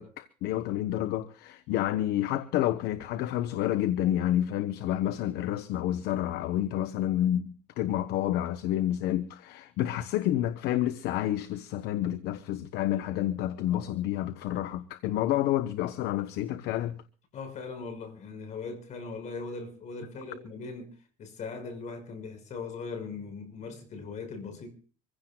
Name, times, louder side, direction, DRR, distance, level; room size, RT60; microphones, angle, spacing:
voice 1, 0.0-17.0, left 12 dB, 55° left, 1.0 m, -29 dB
voice 2, 17.3-20.9 21.2-24.7, left 4 dB, 35° left, 5.9 m, -39 dB
25.5 x 16.0 x 2.4 m
cardioid pair, 145°, 20 cm